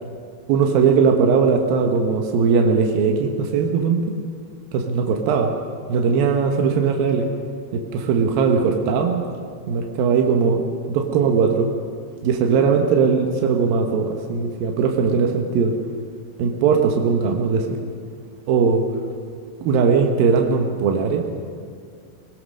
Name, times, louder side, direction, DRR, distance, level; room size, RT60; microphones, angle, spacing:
voice 1, 0.5-4.2 4.7-5.5 5.9-7.3 7.7-9.2 9.7-11.7 12.2-15.7 16.4-17.8 18.5-18.8 19.6-21.2, right 5 dB, 75° right, 3 dB, 2.2 m, -19 dB
22.0 x 18.5 x 6.4 m, 2.2 s
omnidirectional pair, 5.7 m